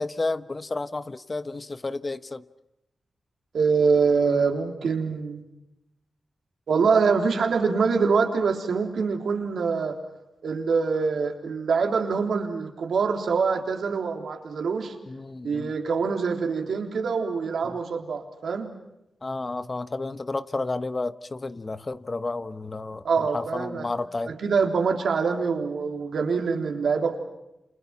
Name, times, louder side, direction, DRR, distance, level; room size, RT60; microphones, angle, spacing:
voice 1, 0.0-2.4 15.1-15.7 17.6-17.8 19.2-24.3, left 3 dB, 35° left, 12 dB, 1.2 m, -31 dB
voice 2, 3.5-5.4 6.7-10.0 10.4-14.9 15.4-18.7 23.0-23.9 24.3-27.2, right 5 dB, 80° right, 3 dB, 3.5 m, -24 dB
30.0 x 28.0 x 5.9 m, 0.88 s
cardioid pair, 70°, 0 cm